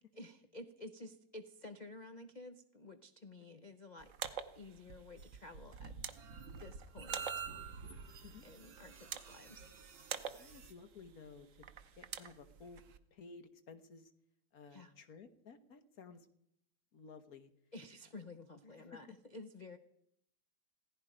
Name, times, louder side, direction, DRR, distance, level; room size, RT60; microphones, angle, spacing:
voice 1, 0.1-4.1 4.5-6.1 6.6-7.5 8.4-9.7 14.7-15.0 17.7-19.8, left 2 dB, 90° left, 8 dB, 0.4 m, -52 dB
sound 1, 4.0-13.0, right 8 dB, 50° right, 1.0 m, -48 dB
sound 2, 5.2-10.7, right 6 dB, 70° right, 2.6 m, -48 dB
voice 2, 10.4-11.7 12.0-12.8 13.1-14.1 14.5-16.3 16.9-17.5 18.8-18.9, left 4 dB, 50° left, 10 dB, 1.4 m, -55 dB
17.0 x 15.0 x 5.0 m, 0.73 s
omnidirectional pair, 2.2 m